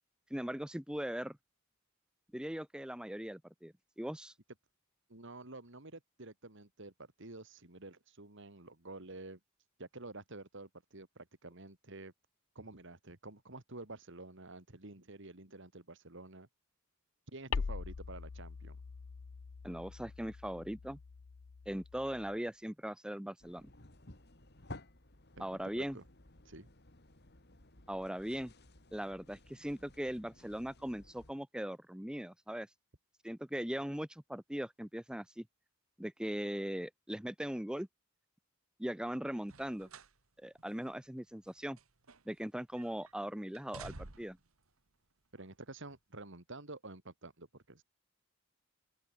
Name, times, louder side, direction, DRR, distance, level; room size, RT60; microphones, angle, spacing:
voice 1, 0.3-1.4 2.3-4.3 19.6-21.0 21.7-23.7 25.4-26.0 27.9-28.5 28.9-32.7 33.2-35.4 36.0-37.9 38.8-39.9 40.4-41.8 42.3-44.4, equal, 5° right, 0.7 m, -40 dB
voice 2, 5.1-9.4 9.8-12.1 12.5-16.5 17.3-18.8 25.4-25.5 25.8-26.0 26.4-26.7 45.3-47.8, right 2 dB, 60° right, 2.8 m, -50 dB
sound 1, 17.5-22.4, left 5 dB, 90° left, 0.6 m, -43 dB
sound 2, 23.4-31.3, left 2 dB, 50° left, 3.1 m, -55 dB
sound 3, 39.4-40.2 40.6-40.7 41.4-42.5 42.8-43.1 43.5-44.5 45.4-45.5, right 3 dB, 90° right, 2.1 m, -52 dB
open air
head